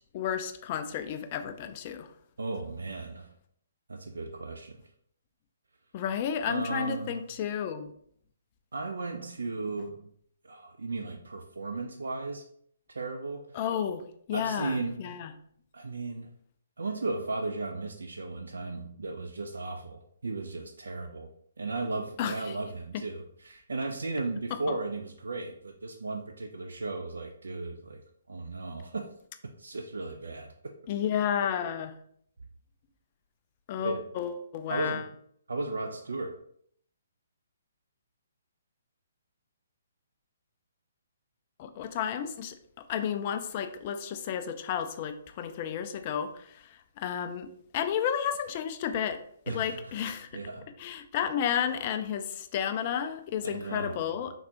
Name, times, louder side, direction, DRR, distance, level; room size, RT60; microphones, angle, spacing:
voice 1, 0.0-2.1 5.9-7.9 13.5-15.3 22.2-22.3 24.7-24.8 30.9-31.9 33.7-35.0 41.6-42.6 42.9-49.2 49.5-50.3 50.8-54.3, left 8 dB, 35° left, 8 dB, 0.3 m, -32 dB
voice 2, 2.4-3.3 3.9-4.8 6.4-7.3 8.7-10.1 10.4-12.4 12.9-13.6 14.3-15.1 15.7-16.3 16.8-21.3 21.6-28.0 28.3-29.1 29.6-30.5 33.8-34.0 34.7-35.1 35.5-36.4 49.5-49.9 50.3-50.7 53.4-54.1, right 3 dB, 70° right, 4 dB, 0.3 m, -35 dB
3.5 x 2.3 x 2.7 m, 0.65 s
figure-of-eight pair, 130°, 0 cm